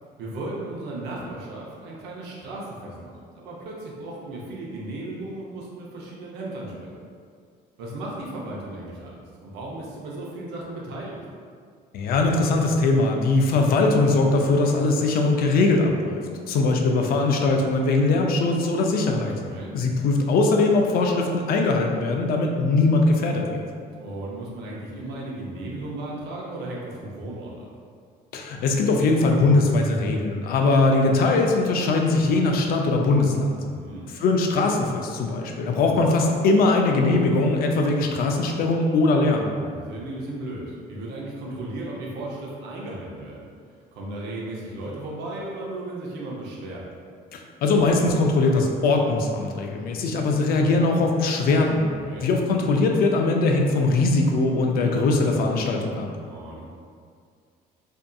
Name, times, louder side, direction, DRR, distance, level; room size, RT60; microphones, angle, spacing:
voice 1, 0.2-6.9 7.8-11.2 19.3-19.7 24.0-27.7 33.6-34.1 39.5-43.5 43.9-46.8 51.9-52.3 56.3-56.6, right 2 dB, 85° right, -4 dB, 0.6 m, -35 dB
voice 2, 11.9-19.3 19.7-23.7 28.3-33.6 34.2-39.5 47.3-51.9 52.2-56.1, left 3 dB, 60° left, 2 dB, 0.4 m, -21 dB
2.6 x 2.4 x 2.3 m, 2.1 s
cardioid pair, 110°, 17 cm